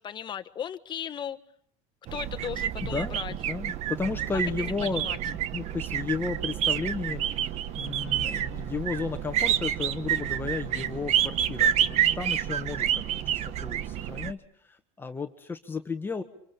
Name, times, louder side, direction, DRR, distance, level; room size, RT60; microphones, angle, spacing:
voice 1, 0.0-1.4 2.1-3.3 4.6-5.2, left 9 dB, 30° left, 9 dB, 1.4 m, -36 dB
sound 1, 2.1-14.3, right 10 dB, 50° right, 1.2 m, -29 dB
voice 2, 2.8-3.2 3.5-7.2 7.7-16.2, left 4 dB, 15° left, 6 dB, 1.4 m, -34 dB
27.5 x 26.0 x 7.0 m, 0.65 s
cardioid pair, 135°, 15 cm